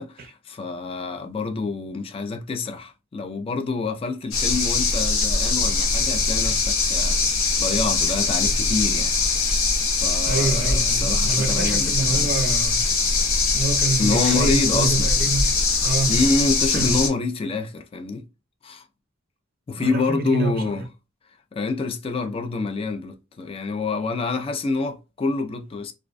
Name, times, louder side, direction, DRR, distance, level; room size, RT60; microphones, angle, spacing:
voice 1, 0.0-7.2 7.6-9.1 10.0-12.3 14.0-15.1 16.1-18.2 18.6-18.8 19.7-20.9 21.5-25.9, left 3 dB, 30° left, 0.3 m, -27 dB
sound 1, 4.3-17.1, left 3 dB, 70° left, 0.7 m, -22 dB
voice 2, 10.3-12.9 13.5-15.5 15.8-16.2 16.7-16.9 19.8-20.8, right 3 dB, 50° right, 0.5 m, -27 dB
2.4 x 2.1 x 2.4 m
head